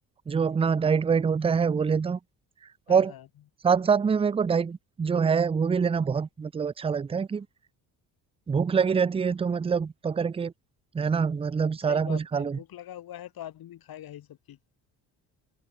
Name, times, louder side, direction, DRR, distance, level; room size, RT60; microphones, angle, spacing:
voice 1, 0.3-2.2 2.9-3.1 3.6-7.5 8.5-10.5 10.9-12.6, right 6 dB, 15° right, 0.4 m, -25 dB
voice 2, 2.9-3.2 11.9-14.6, left 12 dB, 65° left, 2.9 m, -42 dB
supercardioid pair, 80°, 39 cm